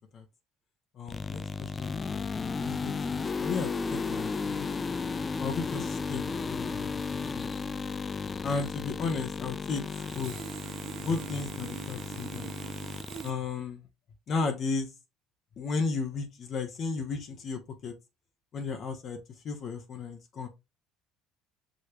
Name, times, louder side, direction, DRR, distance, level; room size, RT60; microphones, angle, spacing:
voice 1, 1.0-2.3 2.6-4.7 5.4-7.5 8.4-9.8 10.1-10.3 11.0-12.5 13.2-13.8 14.3-14.9 15.6-17.9 18.5-19.2 19.4-20.5, left 4 dB, 50° left, 0.9 m, -34 dB
sound 1, 1.1-13.3, left 5 dB, 30° left, 0.4 m, -34 dB
Sawing, 9.8-13.3, right 11 dB, 70° right, 0.6 m, -44 dB
4.9 x 3.1 x 3.0 m
supercardioid pair, 85°, 0 cm